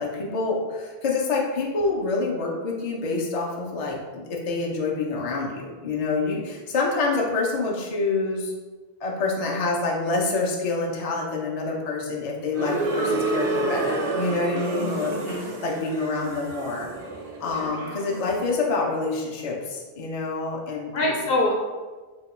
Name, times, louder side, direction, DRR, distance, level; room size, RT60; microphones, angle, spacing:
voice 1, 0.0-8.5 9.0-15.1 15.4-16.9 17.4-21.2, left 3 dB, 50° left, -2 dB, 0.5 m, -27 dB
sound 1, 12.5-18.4, right 2 dB, 55° right, 0.5 m, -29 dB
voice 2, 14.7-15.5 17.4-17.7 20.9-21.5, left 2 dB, 65° left, -1 dB, 0.9 m, -26 dB
2.8 x 2.2 x 4.1 m, 1.3 s
omnidirectional pair, 1.0 m